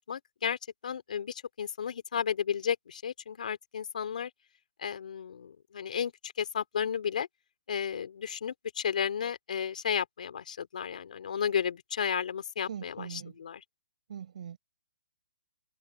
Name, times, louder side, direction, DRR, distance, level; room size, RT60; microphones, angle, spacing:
voice 1, 0.1-4.3 4.8-7.3 7.7-13.6, left 7 dB, 65° left, 3.0 m, -33 dB
voice 2, 12.7-13.3 14.1-14.6, right 8 dB, 55° right, 6.7 m, -41 dB
open air
hypercardioid pair, 155°, 5 cm